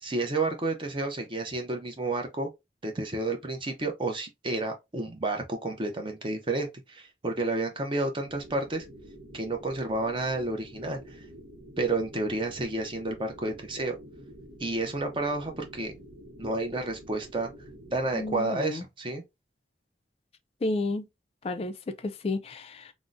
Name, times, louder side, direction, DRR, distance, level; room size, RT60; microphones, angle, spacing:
voice 1, 0.0-2.5 2.8-8.8 9.3-11.2 11.8-14.0 14.6-15.9 16.4-17.5 17.9-19.2, right 2 dB, 30° right, 0.6 m, -30 dB
sound 1, 8.2-18.4, right 1 dB, 70° right, 0.7 m, -48 dB
voice 2, 18.1-18.8 20.6-21.0 21.4-22.9, left 2 dB, 35° left, 0.3 m, -31 dB
3.6 x 2.0 x 2.5 m
head